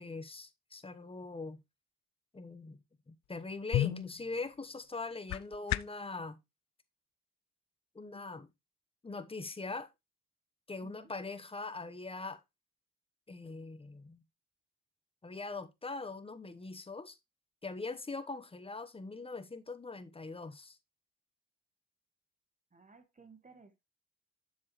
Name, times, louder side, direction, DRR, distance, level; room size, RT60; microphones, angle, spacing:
voice 1, 0.0-1.6 2.3-2.8 3.1-6.4 7.9-8.5 9.0-9.9 10.7-12.4 13.3-14.2 15.2-17.2 17.6-20.8, left 3 dB, 20° left, 1.1 m, -42 dB
sound 1, 3.2-6.1, left 15 dB, 70° left, 0.4 m, -36 dB
voice 2, 22.7-23.8, right 4 dB, 25° right, 1.7 m, -58 dB
7.4 x 7.0 x 3.1 m
cardioid pair, 90°, 30 cm